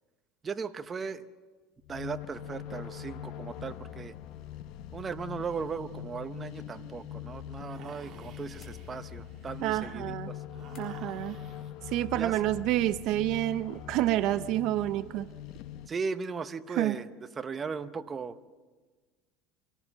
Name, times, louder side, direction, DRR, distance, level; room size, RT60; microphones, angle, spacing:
voice 1, 0.4-1.2 1.9-4.1 4.9-10.4 12.1-12.5 15.9-17.1 17.4-18.5, right 5 dB, 20° right, 10 dB, 0.8 m, -37 dB
sound 1, 1.8-15.9, left 10 dB, 60° left, 1.0 m, -43 dB
sound 2, 7.7-11.7, right 8 dB, 40° right, 1.9 m, -53 dB
sound 3, 8.6-9.3 10.7-11.2, left 5 dB, 40° left, 4.5 m, -60 dB
voice 2, 9.6-10.3 10.8-11.4 11.9-15.3 16.8-17.0, right 14 dB, 55° right, 13 dB, 0.6 m, -28 dB
24.5 x 17.5 x 7.2 m, 1.4 s
cardioid pair, 140°, 0 cm